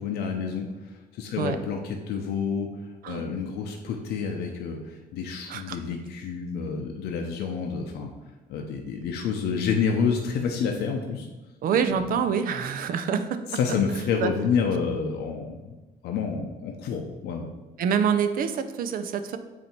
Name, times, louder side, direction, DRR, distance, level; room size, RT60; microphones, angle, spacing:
voice 1, 0.0-2.7 3.1-8.1 8.5-11.3 13.5-15.7 16.0-17.5, left 6 dB, 75° left, 2 dB, 0.7 m, -28 dB
voice 2, 11.6-13.6 14.2-14.3 17.8-19.4, right 7 dB, 60° right, 10 dB, 0.5 m, -26 dB
8.2 x 2.8 x 4.4 m, 1.2 s
cardioid pair, 110°, 17 cm